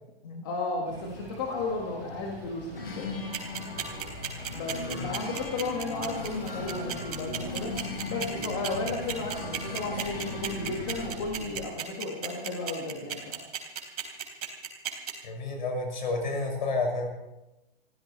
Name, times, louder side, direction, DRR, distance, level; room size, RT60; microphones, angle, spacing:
voice 1, 0.4-3.1 4.5-7.7 8.1-13.4, left 3 dB, 20° left, -1 dB, 1.8 m, -34 dB
sound 1, 0.8-11.6, right 1 dB, 15° right, 7.6 m, -44 dB
sound 2, 2.7-11.1, left 3 dB, 65° left, 4.5 m, -38 dB
sound 3, 3.3-15.1, right 10 dB, 40° right, 3.7 m, -33 dB
voice 2, 15.2-17.1, left 3 dB, 50° left, 2 dB, 6.0 m, -30 dB
27.5 x 15.5 x 3.2 m, 0.96 s
hypercardioid pair, 180°, 31 cm